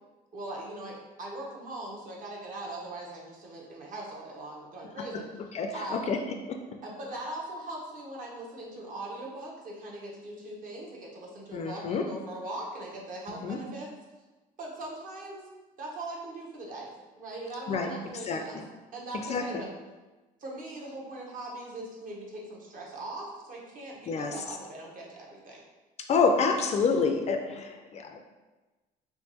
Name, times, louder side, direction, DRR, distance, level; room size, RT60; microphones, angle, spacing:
voice 1, 0.3-5.3 5.7-6.1 6.8-13.9 14.6-15.4 15.8-18.6 18.9-19.7 20.4-25.6, right 2 dB, 55° right, -2 dB, 0.9 m, -40 dB
voice 2, 5.5-6.2 6.5-6.6 11.5-12.0 13.3-13.6 17.7-17.9 18.3-18.4 19.3-19.4 24.1-24.3 26.1-28.2, left 5 dB, 40° left, 5 dB, 0.4 m, -27 dB
3.5 x 2.6 x 2.9 m, 1.2 s
cardioid pair, 110°, 17 cm